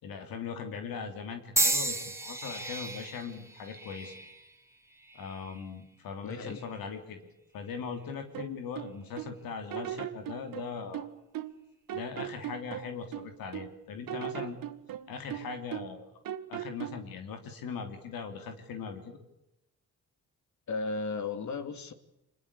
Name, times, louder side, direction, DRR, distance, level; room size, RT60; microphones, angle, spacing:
voice 1, 0.0-4.1 5.1-11.1 11.9-14.6 15.1-16.2 16.5-19.2, left 5 dB, 80° left, 5 dB, 3.3 m, -40 dB
sound 1, 1.6-5.7 6.4-6.8 7.8-8.0, right 2 dB, 10° right, 3.4 m, -33 dB
voice 2, 6.2-6.6 20.7-21.9, left 4 dB, 55° left, 9 dB, 2.8 m, -35 dB
sound 2, 8.3-9.4 9.7-11.6 11.9-13.7 14.1-16.0 16.3-17.1, right 11 dB, 75° right, 1.7 m, -38 dB
25.0 x 21.0 x 8.4 m, 0.90 s
cardioid pair, 75°, 34 cm